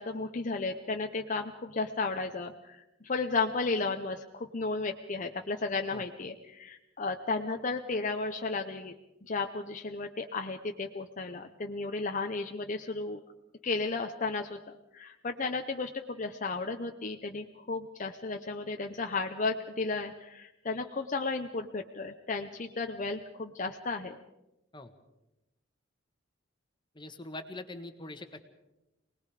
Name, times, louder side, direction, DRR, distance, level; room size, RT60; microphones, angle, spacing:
voice 1, 0.0-8.9 9.2-13.2 13.6-14.6 14.9-24.2, left 3 dB, 40° left, 5 dB, 0.8 m, -34 dB
voice 2, 26.9-28.4, left 2 dB, 25° left, 8 dB, 1.5 m, -43 dB
27.0 x 19.5 x 5.0 m, 0.95 s
head